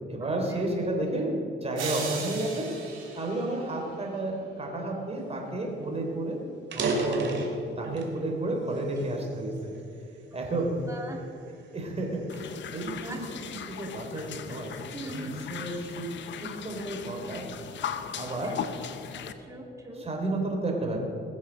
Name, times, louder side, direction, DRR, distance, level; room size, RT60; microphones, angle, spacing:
voice 1, 0.1-2.7 3.1-6.4 6.7-9.7 10.3-10.8 11.7-13.2 13.8-16.1 16.4-17.4 18.1-18.5 20.0-21.0, right 2 dB, 30° right, 1 dB, 3.6 m, -32 dB
sound 1, 1.8-4.1, right 5 dB, 80° right, 3.2 m, -37 dB
sound 2, 5.5-5.6 5.9-6.1 6.6-8.2 8.7-10.0 10.6-10.8 11.5-13.5, right 3 dB, 65° right, 2.6 m, -33 dB
voice 2, 10.5-11.2 13.0-13.4 14.9-15.4 18.4-18.6 19.1-20.1, right 2 dB, 15° right, 0 dB, 2.8 m, -41 dB
sound 3, 12.3-19.3, left 8 dB, 65° left, 0.9 m, -38 dB
20.0 x 7.4 x 6.4 m, 2.7 s
cardioid pair, 90°, 20 cm